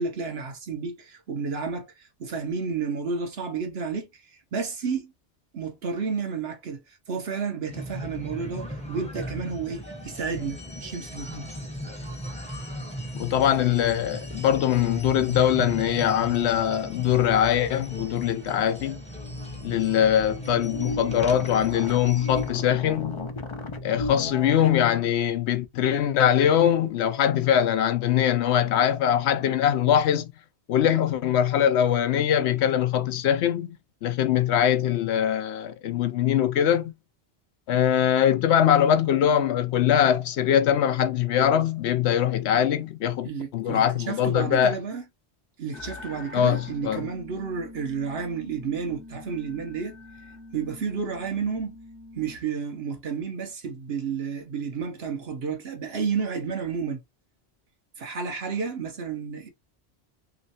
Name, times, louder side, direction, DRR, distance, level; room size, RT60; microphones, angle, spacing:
voice 1, 0.0-5.1 5.5-11.5 43.2-45.0 45.6-49.9 50.5-51.8 52.1-57.0 58.0-59.5, right 5 dB, 65° right, 1.1 m, -31 dB
sound 1, 7.7-22.5, equal, 5° left, 0.7 m, -38 dB
voice 2, 13.1-19.0 19.6-23.2 23.8-30.3 30.7-33.8 34.0-36.9 37.7-44.7 46.3-47.0, left 10 dB, 85° left, 0.9 m, -22 dB
sound 2, 19.1-24.8, left 1 dB, 45° left, 0.4 m, -35 dB
sound 3, 45.7-52.4, left 2 dB, 60° left, 1.0 m, -44 dB
3.1 x 3.1 x 2.8 m
omnidirectional pair, 1.1 m